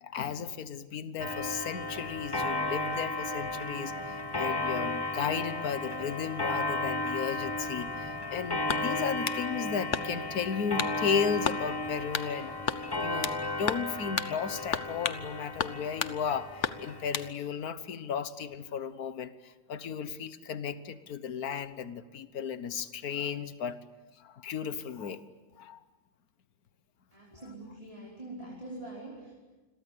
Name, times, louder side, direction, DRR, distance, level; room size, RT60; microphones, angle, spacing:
voice 1, 0.0-3.9 4.3-12.5 13.0-23.8 24.2-25.2 25.6-25.8 27.4-27.5, left 7 dB, 70° left, 13 dB, 1.6 m, -34 dB
Clock, 1.2-17.3, left 2 dB, 20° left, 0.9 m, -34 dB
sound 1, 8.7-9.4 9.9-10.3 10.8-11.0 11.4-11.6 12.1-12.3 12.7-13.4 13.7-13.9 14.2-14.3 14.7-15.2 15.6-16.2 16.6-17.3, left 7 dB, 55° left, 1.2 m, -33 dB
voice 2, 27.1-29.3, right 2 dB, 20° right, -5 dB, 5.0 m, -44 dB
28.5 x 22.5 x 8.5 m, 1.2 s
omnidirectional pair, 1.6 m